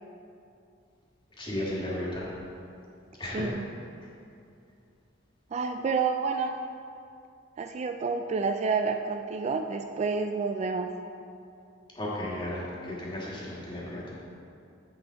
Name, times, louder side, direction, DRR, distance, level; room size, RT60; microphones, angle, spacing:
voice 1, 1.4-2.3 3.2-3.5 12.0-14.1, left 1 dB, 25° left, -6 dB, 1.9 m, -34 dB
voice 2, 3.3-3.7 5.5-6.6 7.6-10.9, right 4 dB, 35° right, 6 dB, 0.3 m, -29 dB
7.7 x 7.1 x 4.6 m, 2.5 s
head